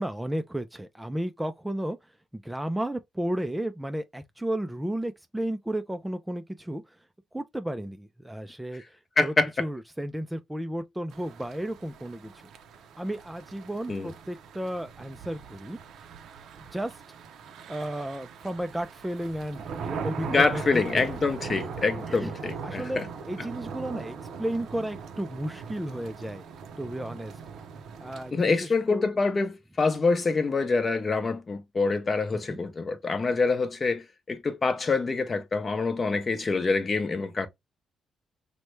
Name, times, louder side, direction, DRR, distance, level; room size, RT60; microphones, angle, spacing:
voice 1, 0.0-2.0 2.3-7.0 7.3-9.3 9.6-12.3 13.0-15.8 16.6-16.9 17.7-21.1 22.1-22.3 22.6-26.4 26.8-27.4 28.0-29.1 32.3-32.6, right 1 dB, 5° right, 0.3 m, -33 dB
voice 2, 9.2-9.7 13.9-14.1 20.3-23.1 28.3-37.5, left 4 dB, 35° left, 0.6 m, -26 dB
sound 1, 11.1-28.3, right 6 dB, 75° right, 0.4 m, -40 dB
3.1 x 2.1 x 3.1 m
cardioid pair, 90°, 0 cm